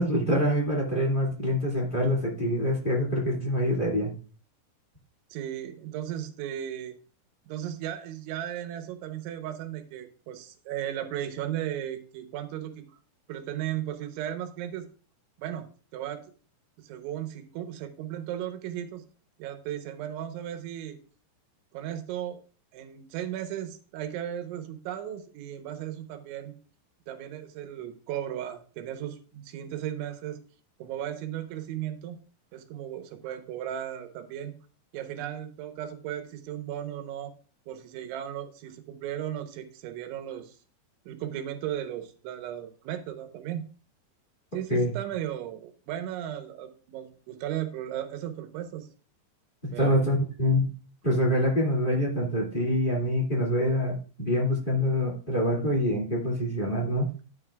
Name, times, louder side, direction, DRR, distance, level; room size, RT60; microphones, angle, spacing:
voice 1, 0.0-4.1 44.7-44.9 49.6-50.7 51.0-57.1, equal, 25° left, -2 dB, 1.0 m, -25 dB
voice 2, 5.3-7.0 7.5-12.8 13.3-14.9 15.4-15.7 15.9-16.2 16.8-19.0 19.4-21.0 21.7-22.4 22.7-26.5 27.1-30.4 30.8-32.2 32.5-34.5 34.9-37.3 37.7-40.6 41.1-43.6 44.5-48.9 49.7-50.0, right 11 dB, 90° right, 7 dB, 3.4 m, -36 dB
12.0 x 8.5 x 2.4 m, 0.38 s
omnidirectional pair, 5.2 m